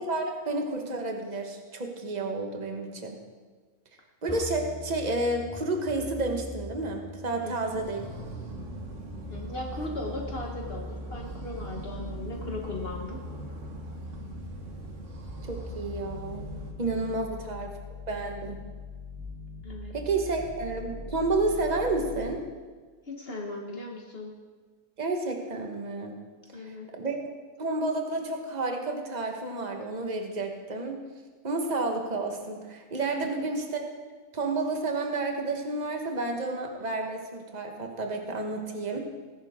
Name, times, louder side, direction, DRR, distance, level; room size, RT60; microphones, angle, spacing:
voice 1, 0.0-3.2 4.2-8.0 15.5-16.5 16.8-17.7 18.1-18.6 19.9-22.4 25.0-26.1 26.6-27.3 27.6-31.0 31.4-33.9 34.3-39.0, right 2 dB, 35° right, 3 dB, 1.4 m, -30 dB
sound 1, 4.3-22.3, left 1 dB, 5° right, 3.3 m, -41 dB
voice 2, 7.4-7.8 9.3-13.2 16.9-17.1 19.6-19.9 23.0-24.3 26.5-26.9 33.2-33.3, left 2 dB, 50° left, 0 dB, 1.4 m, -38 dB
sound 2, 7.7-16.7, right 2 dB, 80° right, 1.9 m, -43 dB
18.0 x 10.5 x 3.7 m, 1.4 s
omnidirectional pair, 1.3 m